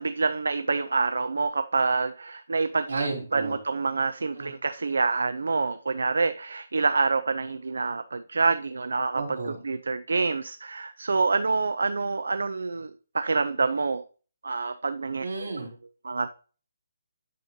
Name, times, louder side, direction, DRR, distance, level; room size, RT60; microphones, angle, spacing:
voice 1, 0.0-2.9 3.3-12.9 13.1-14.0 14.4-15.3 16.0-16.3, right 4 dB, 90° right, 11 dB, 0.5 m, -27 dB
voice 2, 2.9-3.6 4.3-4.5 9.1-9.6 15.2-15.7, right 3 dB, 75° right, 1 dB, 3.2 m, -32 dB
9.2 x 6.6 x 2.8 m, 0.38 s
hypercardioid pair, 175°, 0 cm